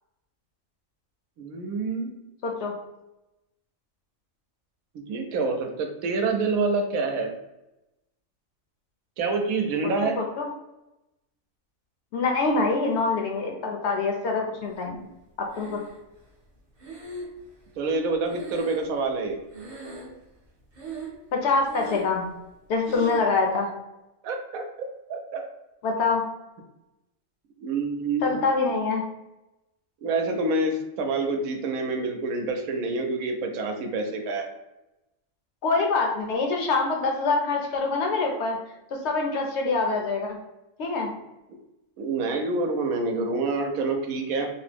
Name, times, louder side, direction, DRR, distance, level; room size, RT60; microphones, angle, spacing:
voice 1, 1.4-2.1 5.1-7.3 9.2-10.2 17.8-19.4 24.2-24.6 25.1-25.5 27.6-28.3 30.0-34.5 42.0-44.5, right 3 dB, 90° right, 4 dB, 1.0 m, -27 dB
voice 2, 2.4-2.7 10.2-10.5 12.1-15.1 15.4-15.8 21.3-22.2 22.7-23.7 25.8-26.2 28.2-29.0 35.6-38.6 38.9-40.4 40.8-41.1, left 3 dB, 65° left, 1 dB, 0.8 m, -25 dB
Breathing, 15.5-16.2 16.8-19.3 19.5-20.3 20.7-21.3 21.6-22.2 22.8-23.3, right 2 dB, 35° right, 0.6 m, -40 dB
2.9 x 2.0 x 3.2 m, 0.94 s
omnidirectional pair, 1.4 m